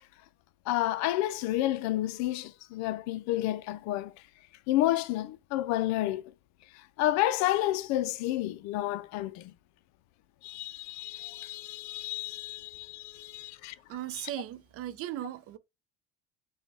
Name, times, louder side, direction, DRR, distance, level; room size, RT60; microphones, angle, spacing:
voice 1, 0.7-4.1 4.7-6.3 7.0-9.5 10.4-13.7, left 15 dB, 60° left, 0.4 m, -30 dB
voice 2, 13.9-15.6, right 13 dB, 50° right, 0.5 m, -37 dB
5.0 x 2.3 x 3.3 m
supercardioid pair, 90°, 31 cm